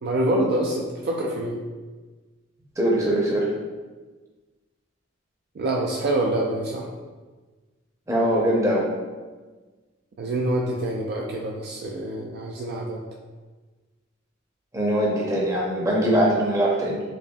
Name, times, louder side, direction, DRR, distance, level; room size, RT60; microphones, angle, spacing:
voice 1, 0.0-1.6 5.6-6.9 10.2-13.0, right 1 dB, 50° right, 0 dB, 0.3 m, -26 dB
voice 2, 2.8-3.5 8.1-8.9 14.7-17.0, right 1 dB, 15° right, -3 dB, 0.6 m, -22 dB
5.2 x 2.4 x 2.3 m, 1.3 s
head